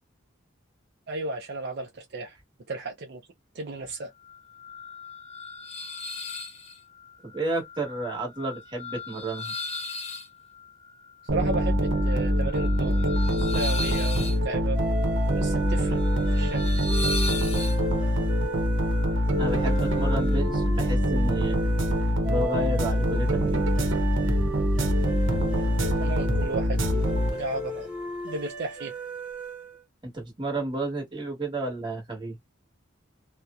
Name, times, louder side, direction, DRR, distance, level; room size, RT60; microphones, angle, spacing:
voice 1, 1.1-2.4 2.7-3.2 3.5-4.1 11.3-13.1 13.4-14.8 15.3-16.0 16.3-16.7 26.0-27.9 28.2-28.9, right 3 dB, 55° right, 0.5 m, -34 dB
sound 1, 4.2-20.4, left 3 dB, 30° left, 0.5 m, -38 dB
voice 2, 7.2-9.5 14.1-14.4 19.4-21.6 22.3-23.7 30.0-32.4, right 1 dB, 25° right, 1.3 m, -31 dB
sound 2, 11.3-27.7, equal, 85° right, 0.8 m, -24 dB
sound 3, 14.7-29.8, right 2 dB, 5° right, 1.1 m, -36 dB
2.8 x 2.0 x 2.3 m
head